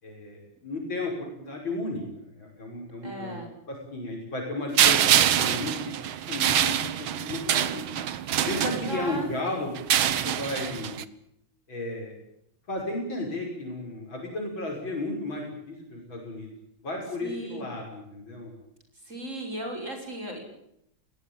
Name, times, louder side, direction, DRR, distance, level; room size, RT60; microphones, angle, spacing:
voice 1, 0.0-5.9 6.3-7.9 8.5-10.9 11.7-12.2 12.7-16.5 16.8-18.5, left 2 dB, 70° left, 0 dB, 6.9 m, -34 dB
voice 2, 3.0-3.5 8.6-9.7 17.2-17.6 19.0-20.4, right 1 dB, 35° right, 3 dB, 6.3 m, -36 dB
sound 1, 4.8-9.2 9.8-11.0, right 10 dB, 85° right, 1.9 m, -25 dB
20.5 x 19.5 x 9.1 m, 0.77 s
omnidirectional pair, 2.2 m